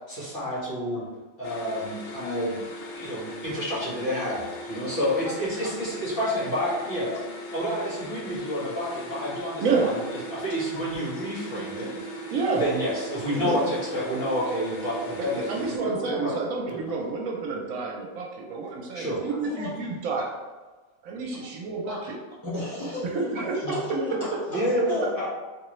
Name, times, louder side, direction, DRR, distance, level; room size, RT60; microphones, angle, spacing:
voice 1, 0.1-1.1 1.4-2.6 2.9-7.2 7.5-10.0 10.3-11.9 12.6-16.3 16.7-16.8 18.9-19.2 23.6-23.8 24.5-25.3, equal, 40° left, -9 dB, 1.7 m, -29 dB
sound 1, 1.4-15.8, right 1 dB, 65° left, 0.6 m, -38 dB
voice 2, 11.5-12.0 13.4-13.6 19.3-19.9 21.9-22.0 22.4-25.1, left 1 dB, 25° right, -10 dB, 0.8 m, -33 dB
voice 3, 12.3-12.6 15.2-20.3 21.0-22.2 23.1-23.6, right 4 dB, 75° right, -1 dB, 1.0 m, -29 dB
3.7 x 2.7 x 3.0 m, 1.3 s
omnidirectional pair, 1.5 m